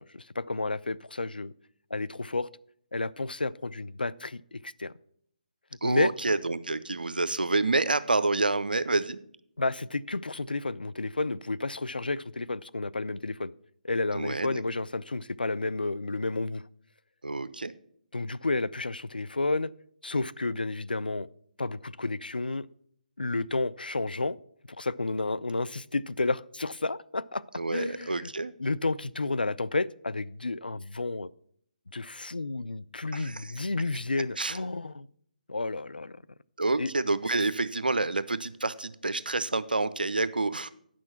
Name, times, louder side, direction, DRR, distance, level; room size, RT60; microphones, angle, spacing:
voice 1, 0.0-1.5 1.9-2.5 2.9-4.9 5.8-6.1 9.6-13.5 13.8-16.6 18.1-19.7 20.0-21.3 21.6-22.7 23.2-24.4 24.7-27.4 27.7-28.3 28.6-31.3 31.9-35.1 35.5-36.2 36.8-36.9, left 3 dB, 85° left, 0.4 m, -31 dB
voice 2, 5.8-9.2 14.1-14.6 17.2-17.7 27.5-28.5 33.1-33.5 34.4-34.6 36.6-40.7, right 3 dB, 80° right, 0.6 m, -28 dB
9.6 x 6.2 x 5.7 m
figure-of-eight pair, 145°, 5 cm